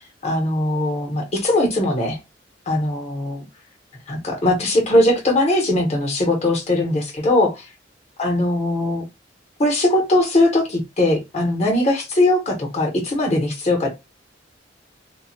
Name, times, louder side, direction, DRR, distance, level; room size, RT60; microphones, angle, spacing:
voice 1, 0.2-2.2 2.7-3.4 4.1-7.6 8.2-9.0 9.6-13.9, left 1 dB, 35° left, 0.9 m, -20 dB
2.2 x 2.1 x 2.7 m
head